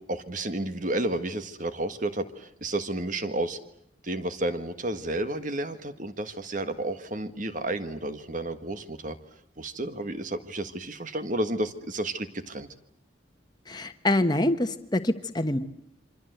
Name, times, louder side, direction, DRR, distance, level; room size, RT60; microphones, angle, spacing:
voice 1, 0.1-3.6 4.0-9.2 9.6-12.7, right 1 dB, 40° right, 10 dB, 1.6 m, -31 dB
voice 2, 13.7-15.6, left 1 dB, 20° left, 8 dB, 1.3 m, -25 dB
27.5 x 25.0 x 8.0 m, 0.72 s
head